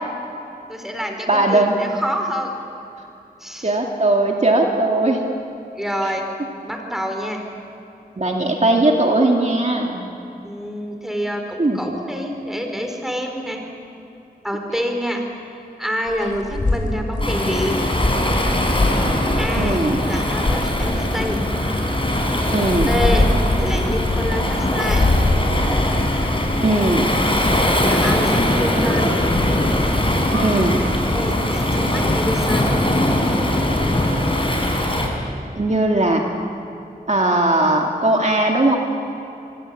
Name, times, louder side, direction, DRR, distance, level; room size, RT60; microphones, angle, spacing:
voice 1, 0.7-2.5 3.4-3.8 5.7-6.2 6.7-7.4 10.4-13.6 14.4-15.2 15.8-17.8 19.4-19.8 20.1-21.4 22.8-23.2 23.6-25.0 27.8-29.1 31.1-32.7, equal, ahead, 3 dB, 4.5 m, -27 dB
voice 2, 1.3-1.8 3.6-5.2 8.2-10.1 11.6-11.8 19.5-20.0 22.5-22.9 26.6-27.1 30.3-30.8 35.6-36.2 37.1-38.8, right 2 dB, 45° right, 1 dB, 2.3 m, -18 dB
sound 1, 16.1-20.0 20.3-21.1 21.7-24.5 24.8-30.3 30.7-31.2 31.7-34.4, left 2 dB, 50° left, 5.7 m, -25 dB
Waves surf, 17.2-35.1, left 1 dB, 35° left, 4.7 m, -21 dB
24.5 x 24.5 x 8.6 m, 2.8 s
wide cardioid pair, 75°, 16 cm